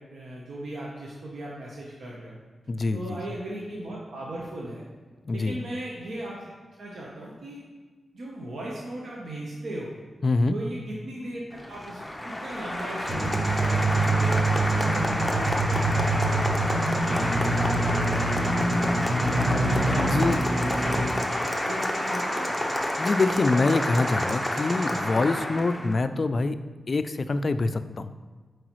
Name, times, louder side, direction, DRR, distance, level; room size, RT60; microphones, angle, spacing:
voice 1, 0.0-2.4 2.9-4.8 5.3-6.4 6.8-7.6 8.1-9.9 10.5-16.7 17.0-18.9 19.3-21.1 21.4-22.6, right 1 dB, 80° right, -4 dB, 1.0 m, -37 dB
voice 2, 2.7-3.2 5.3-5.6 10.2-10.6 20.0-20.4 23.0-26.6 26.9-28.1, left 3 dB, 45° left, 11 dB, 0.3 m, -25 dB
Applause, 11.5-26.0, left 1 dB, 10° left, 0.7 m, -29 dB
sound 1, 13.1-25.0, right 2 dB, 45° right, 1.0 m, -26 dB
7.9 x 4.7 x 3.1 m, 1.3 s
wide cardioid pair, 105°, 0 cm